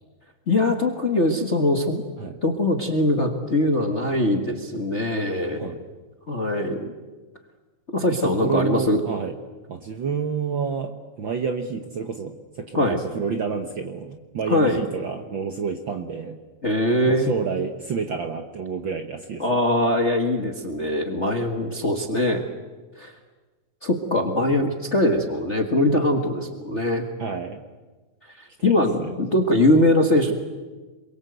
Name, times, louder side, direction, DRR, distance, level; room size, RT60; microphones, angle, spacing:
voice 1, 0.5-2.1 2.4-5.8 6.3-6.9 7.9-9.0 12.7-13.0 14.5-14.8 16.6-17.3 19.4-22.4 23.0-23.1 23.8-27.1 28.4-30.3, left 1 dB, 30° left, 5 dB, 1.3 m, -22 dB
voice 2, 8.2-9.3 9.7-16.4 17.1-19.6 27.2-27.6 28.6-29.4, right 6 dB, 55° right, 6 dB, 1.4 m, -29 dB
27.5 x 22.5 x 8.0 m, 1.3 s
omnidirectional pair, 3.4 m